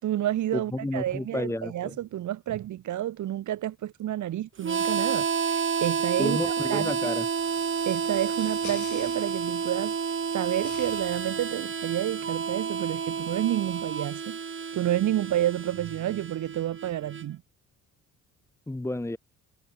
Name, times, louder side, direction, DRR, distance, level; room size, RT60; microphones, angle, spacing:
voice 1, 0.0-6.4 6.7-7.1 7.9-10.0 10.3-14.4 14.7-17.4, right 12 dB, 75° right, 3.4 m, -30 dB
voice 2, 0.5-2.0 6.2-7.3 18.7-19.2, left 1 dB, 10° left, 1.3 m, -31 dB
Harmonica, 4.6-17.3, right 6 dB, 40° right, 4.2 m, -30 dB
sound 1, 7.4-12.4, left 12 dB, 75° left, 7.6 m, -49 dB
cardioid pair, 90°, 30 cm